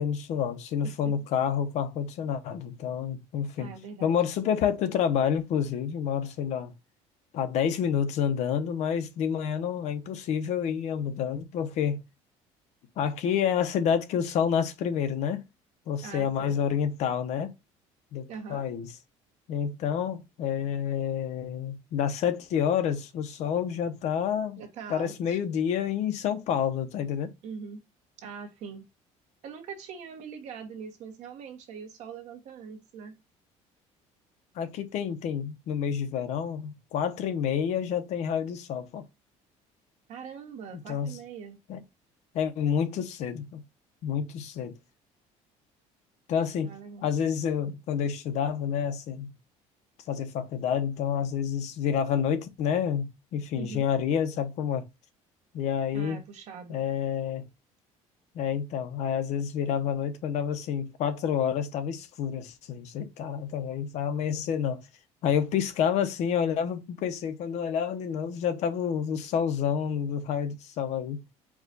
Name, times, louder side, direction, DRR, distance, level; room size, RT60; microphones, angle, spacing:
voice 1, 0.0-3.7 4.0-6.7 7.3-12.0 13.0-15.4 15.9-17.5 18.1-18.9 19.5-24.6 24.9-27.3 34.6-39.0 40.9-41.2 41.7-41.8 42.3-43.6 44.0-44.8 46.3-46.7 47.0-49.3 50.1-54.9 55.5-56.2 56.7-57.5 58.3-64.8 65.2-71.2, left 8 dB, 60° left, 0.8 m, -29 dB
voice 2, 3.6-4.2 16.0-16.6 18.3-18.7 24.6-25.4 27.4-27.8 28.2-28.9 29.4-33.2 40.1-41.6 46.6-47.1 53.6-53.9 55.9-56.8, right 6 dB, 60° right, 1.1 m, -42 dB
4.8 x 2.3 x 3.9 m
cardioid pair, 145°, 13 cm